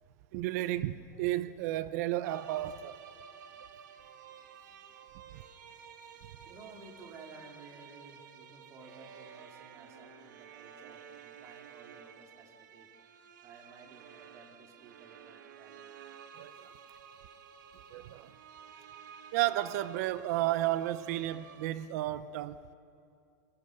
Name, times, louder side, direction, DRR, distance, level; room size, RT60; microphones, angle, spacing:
voice 1, 0.3-3.0 5.3-5.4 16.4-16.5 17.9-18.3 19.3-22.6, right 15 dB, 55° right, 0.9 m, -32 dB
sound 1, 2.2-21.7, right 8 dB, 75° right, 1.8 m, -53 dB
voice 2, 6.4-15.9 18.9-19.0, right 3 dB, 30° right, 3.4 m, -55 dB
30.0 x 23.0 x 6.7 m
supercardioid pair, 150°, 10 cm